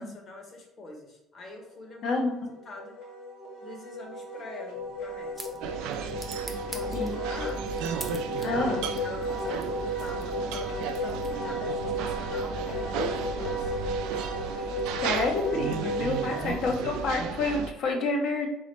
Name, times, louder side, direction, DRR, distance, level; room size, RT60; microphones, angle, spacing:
voice 1, 0.0-2.2 2.6-3.0 3.6-5.6 6.7-7.6 8.4-8.7 9.0-13.7 16.3-16.6, left 2 dB, 40° left, 2 dB, 1.3 m, -44 dB
voice 2, 2.0-2.3 6.9-7.2 8.4-8.9 15.0-18.5, left 3 dB, 60° left, 2 dB, 1.1 m, -28 dB
Wind instrument woodwind instrument, 2.3-16.5, equal, 80° left, 1.3 m, -34 dB
sound 1, 4.7-11.7, right 1 dB, ahead, 0.8 m, -47 dB
sound 2, 5.6-17.7, right 6 dB, 85° right, 0.4 m, -35 dB
3.9 x 3.8 x 3.3 m, 0.94 s
cardioid pair, 115°, 0 cm